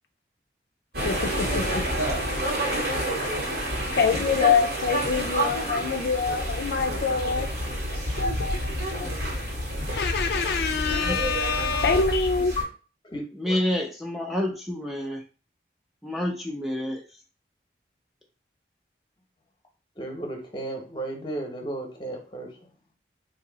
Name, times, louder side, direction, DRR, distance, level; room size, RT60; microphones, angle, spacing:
sound 1, 0.9-12.6, equal, 65° right, 1.6 m, -29 dB
voice 1, 1.0-1.8 4.0-7.5 8.2-8.6 8.9-9.1 10.0-12.5, left 5 dB, 70° left, 0.4 m, -25 dB
voice 2, 13.3-15.2 16.0-17.0, left 1 dB, ahead, 0.4 m, -28 dB
voice 3, 20.0-22.5, right 1 dB, 25° left, 0.8 m, -33 dB
2.9 x 2.7 x 3.9 m
head